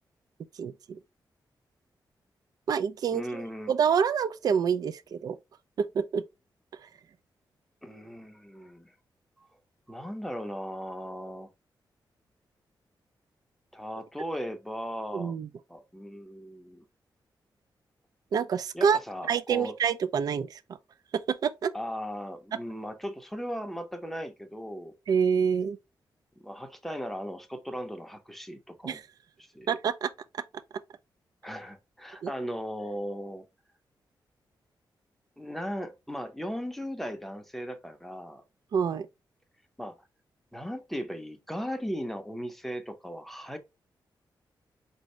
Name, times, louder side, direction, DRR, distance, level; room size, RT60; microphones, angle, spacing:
voice 1, 0.6-1.0 2.7-3.4 3.7-5.4 5.9-6.2 15.1-15.5 18.3-19.0 19.3-20.6 21.4-21.7 25.1-25.8 28.8-29.0 29.7-30.1 32.2-32.3 38.7-39.1, right 7 dB, 55° right, 0.3 m, -27 dB
voice 2, 3.1-3.7 7.8-8.9 9.4-9.5 9.9-11.5 13.7-15.4 15.7-16.9 18.7-19.8 21.7-24.9 26.4-29.0 29.4-29.7 31.4-33.4 35.4-38.4 39.8-40.1 40.5-43.6, equal, 5° left, 0.6 m, -37 dB
4.9 x 2.7 x 3.0 m
wide cardioid pair, 175°, 8 cm